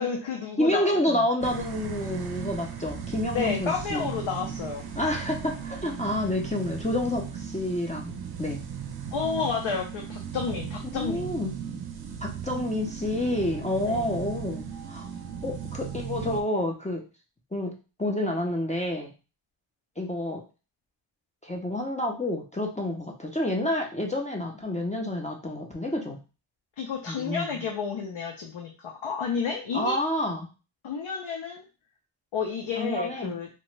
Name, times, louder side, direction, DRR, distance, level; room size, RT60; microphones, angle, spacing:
voice 1, 0.0-1.2 3.3-4.8 9.1-11.4 13.8-14.2 26.8-30.0 30.8-31.6 32.3-33.5, left 6 dB, 80° left, 1 dB, 0.6 m, -31 dB
voice 2, 0.6-4.1 5.0-8.6 10.9-11.5 12.2-15.1 15.4-17.0 17.5-17.7 18.0-19.1 20.0-20.4 21.4-26.2 27.1-27.6 29.7-30.5 32.8-33.3, left 1 dB, 15° left, 0 dB, 0.4 m, -29 dB
sound 1, 1.4-16.4, right 8 dB, 55° right, 0.5 m, -37 dB
2.9 x 2.1 x 3.1 m, 0.32 s
wide cardioid pair, 125°, 47 cm